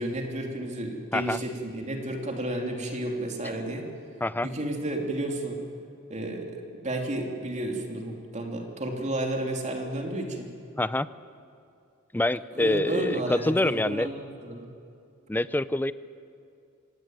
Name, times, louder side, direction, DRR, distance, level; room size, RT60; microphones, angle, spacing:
voice 1, 0.0-3.9 4.4-5.6 6.1-10.5 12.5-14.7, right 1 dB, 35° right, 2 dB, 3.0 m, -32 dB
voice 2, 12.1-14.1 15.3-15.9, left 1 dB, 10° left, 15 dB, 0.5 m, -26 dB
25.0 x 18.0 x 9.2 m, 2.5 s
head